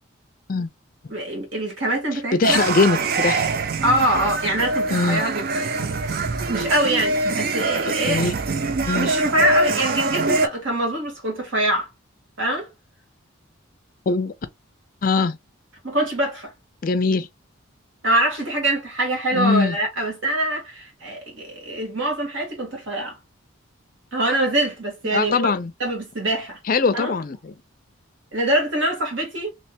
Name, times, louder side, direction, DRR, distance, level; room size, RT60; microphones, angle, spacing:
voice 1, 1.1-2.6 3.8-5.7 6.5-8.3 8.9-11.9 12.4-12.7 15.8-16.5 18.0-23.2 24.1-25.5 25.8-26.6 26.9-27.1 28.3-29.5, right 1 dB, 70° right, 1.8 m, -24 dB
voice 2, 2.3-3.5 4.9-5.2 8.1-8.3 8.9-9.1 14.1-14.3 15.0-15.4 16.8-17.3 19.3-19.7 25.1-25.7 26.7-27.5, left 4 dB, 40° left, 0.4 m, -21 dB
sound 1, 2.4-10.5, right 3 dB, 45° right, 0.4 m, -24 dB
3.2 x 2.9 x 2.8 m
head